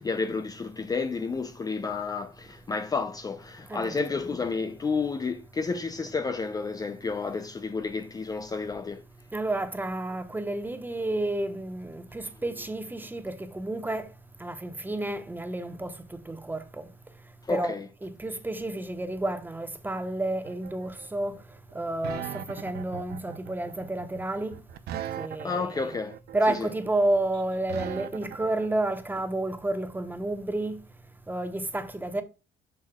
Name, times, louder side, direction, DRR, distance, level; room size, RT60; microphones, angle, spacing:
voice 1, 0.0-9.0 17.4-17.8 25.4-26.2 26.5-26.7, left 4 dB, 20° left, 0.5 m, -31 dB
voice 2, 9.3-14.1 14.4-16.0 16.3-16.9 17.5-17.7 18.0-21.4 21.7-24.6 25.2-25.9 26.3-30.8 31.3-32.2, right 2 dB, 10° right, 0.9 m, -30 dB
sound 1, 20.5-28.7, right 10 dB, 70° right, 0.7 m, -39 dB
7.3 x 6.3 x 2.2 m
cardioid pair, 110°, 17 cm